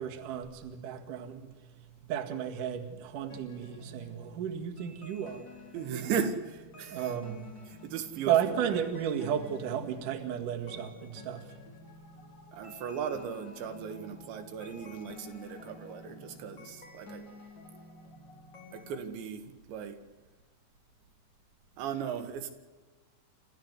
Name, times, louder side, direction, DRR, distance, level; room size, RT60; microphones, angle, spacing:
voice 1, 0.0-1.6 2.0-5.5 6.9-7.4 8.3-11.4, right 9 dB, 55° right, 2 dB, 3.1 m, -33 dB
sound 1, 3.3-19.0, left 2 dB, 25° left, 4.7 m, -51 dB
voice 2, 5.7-7.1 7.7-8.9 12.5-17.4 18.7-20.0 21.8-22.5, right 7 dB, 80° right, 6 dB, 3.8 m, -37 dB
28.0 x 14.0 x 8.1 m, 1.3 s
omnidirectional pair, 5.1 m